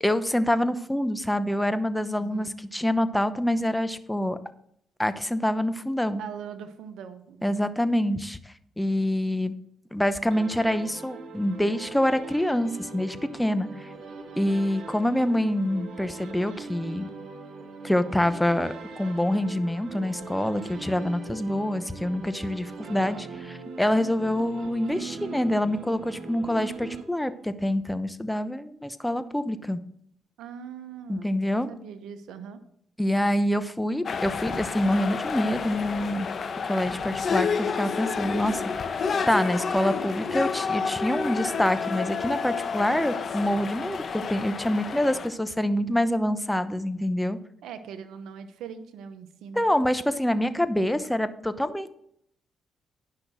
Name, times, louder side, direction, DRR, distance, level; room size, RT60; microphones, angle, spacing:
voice 1, 0.0-4.4 5.0-6.2 7.4-9.5 9.9-13.9 14.4-17.1 17.8-29.8 31.1-31.7 33.0-36.3 36.6-47.4 49.5-51.9, left 1 dB, 5° left, 12 dB, 0.9 m, -26 dB
voice 2, 2.1-2.6 6.2-7.7 30.4-32.6 47.6-49.6, right 7 dB, 80° right, 10 dB, 1.0 m, -41 dB
sound 1, 10.3-27.5, right 4 dB, 60° right, 1.7 m, -41 dB
sound 2, 34.0-45.3, left 5 dB, 55° left, 1.0 m, -30 dB
10.5 x 6.0 x 6.2 m, 0.71 s
supercardioid pair, 50°, 0 cm